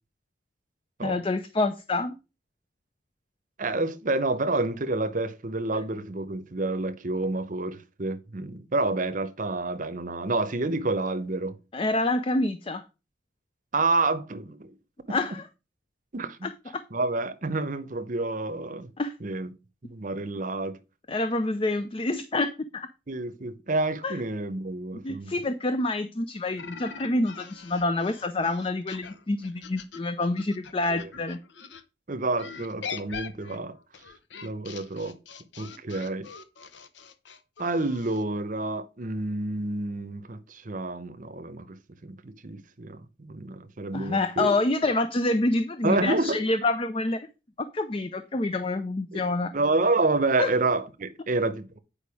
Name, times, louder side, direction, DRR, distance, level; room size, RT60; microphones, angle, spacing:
voice 1, 1.0-2.2 4.5-4.6 11.7-12.8 15.1-15.4 16.4-16.5 19.0-19.1 21.1-22.9 24.0-24.2 25.0-31.4 43.9-47.2 47.7-49.5 50.4-50.5, left 2 dB, 30° left, 0.5 m, -27 dB
voice 2, 3.6-11.6 13.7-14.7 15.1-15.2 16.1-16.5 16.9-18.9 19.2-19.5 19.8-20.8 23.1-25.3 30.9-31.1 32.1-33.8 34.4-35.2 35.6-36.3 37.6-44.6 45.8-46.4 49.1-49.2 49.5-51.8, right 2 dB, 45° right, 0.8 m, -29 dB
sound 1, 26.6-31.8 32.4-38.2, left 6 dB, 70° left, 0.8 m, -43 dB
8.7 x 5.1 x 4.8 m
head